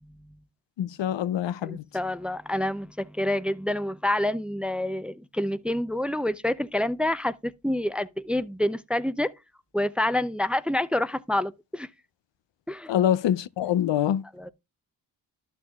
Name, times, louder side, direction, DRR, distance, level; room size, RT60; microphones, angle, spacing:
voice 1, 0.8-1.8 12.9-14.2, left 10 dB, 80° left, 0.6 m, -25 dB
voice 2, 1.6-9.3 9.7-11.9 12.7-12.9 14.3-14.5, left 1 dB, 5° right, 0.5 m, -27 dB
12.0 x 6.2 x 2.4 m
cardioid pair, 75°, 43 cm